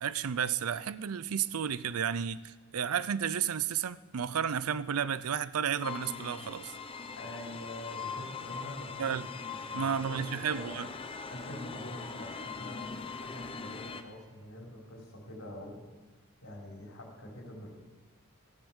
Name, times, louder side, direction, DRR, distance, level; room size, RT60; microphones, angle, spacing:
voice 1, 0.0-6.7 9.0-9.3 9.7-10.9, right 8 dB, 85° right, 17 dB, 0.5 m, -32 dB
sound 1, 5.8-14.0, left 5 dB, 25° left, 0.7 m, -41 dB
voice 2, 7.2-10.7 11.3-15.9 16.4-17.7, left 1 dB, 70° left, -2 dB, 4.0 m, -45 dB
14.5 x 10.5 x 7.2 m, 1.3 s
head